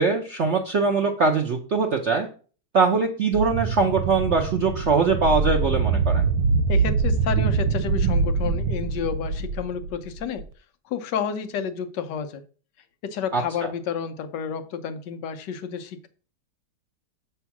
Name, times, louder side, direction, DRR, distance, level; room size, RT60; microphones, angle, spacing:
voice 1, 0.0-2.3 2.7-6.2 13.3-13.4, right 4 dB, 70° right, 2 dB, 0.6 m, -22 dB
sound 1, 3.3-10.4, right 4 dB, 85° right, 1.4 m, -24 dB
voice 2, 6.7-10.4 10.8-12.4 13.0-16.1, left 7 dB, 70° left, 9 dB, 1.2 m, -30 dB
7.1 x 3.6 x 5.8 m, 0.40 s
omnidirectional pair, 2.2 m